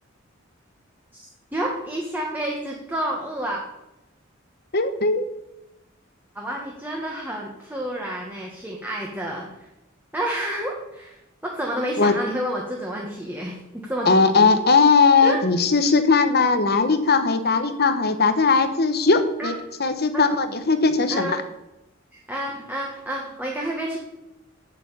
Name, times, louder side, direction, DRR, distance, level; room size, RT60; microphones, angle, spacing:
voice 1, 1.5-3.6 6.3-9.5 10.1-14.1 14.4-14.5 15.2-15.4 19.4-19.5 20.1-20.3 21.1-21.4 22.1-24.0, right 1 dB, 10° right, -2 dB, 1.6 m, -29 dB
voice 2, 4.7-5.3 12.0-12.1 14.0-19.5 19.8-21.4, left 4 dB, 50° left, 10 dB, 1.1 m, -19 dB
9.3 x 6.9 x 8.4 m, 0.92 s
head